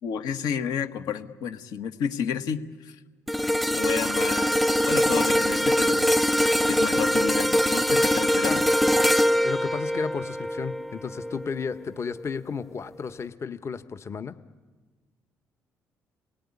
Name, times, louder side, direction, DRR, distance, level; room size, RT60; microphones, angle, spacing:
voice 1, 0.0-3.0 3.7-6.1 6.7-8.7, left 8 dB, 75° left, 8 dB, 1.4 m, -31 dB
sound 1, 3.3-11.6 12.1-12.3, equal, ahead, 0.7 m, -23 dB
voice 2, 9.4-14.3, left 6 dB, 45° left, 11 dB, 1.2 m, -33 dB
28.0 x 18.0 x 9.8 m, 1.4 s
supercardioid pair, 60°, 7 cm